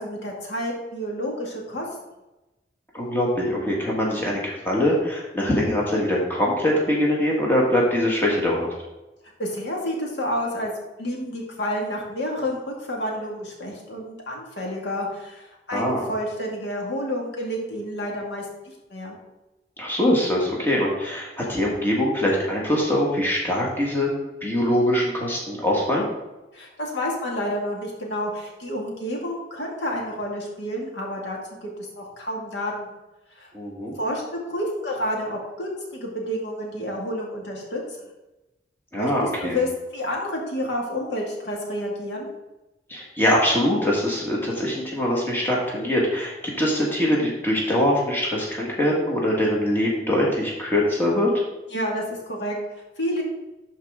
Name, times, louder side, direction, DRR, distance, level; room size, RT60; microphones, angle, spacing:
voice 1, 0.0-1.9 9.4-10.7 11.0-18.5 18.9-19.2 26.5-33.0 33.4-33.5 34.0-37.8 39.0-42.3 51.7-53.2, equal, 80° left, -1 dB, 2.0 m, -29 dB
voice 2, 2.9-8.7 15.7-16.0 19.8-24.1 24.4-26.1 33.5-33.9 38.9-39.6 42.9-51.3, left 1 dB, 10° left, -4 dB, 1.7 m, -23 dB
12.0 x 4.6 x 3.7 m, 1.0 s
head